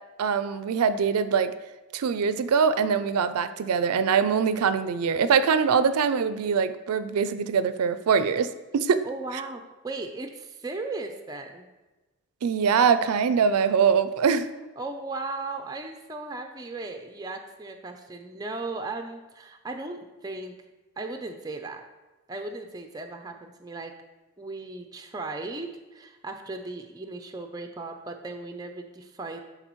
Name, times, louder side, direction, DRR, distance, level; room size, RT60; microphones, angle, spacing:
voice 1, 0.2-1.5 1.9-8.5 8.7-9.0 12.4-14.5, right 6 dB, 85° right, 12 dB, 0.4 m, -23 dB
voice 2, 9.0-11.7 14.8-20.5 21.0-21.8 22.3-23.9 24.4-29.4, right 3 dB, 15° right, 5 dB, 0.4 m, -36 dB
10.5 x 3.9 x 3.0 m, 1.1 s
head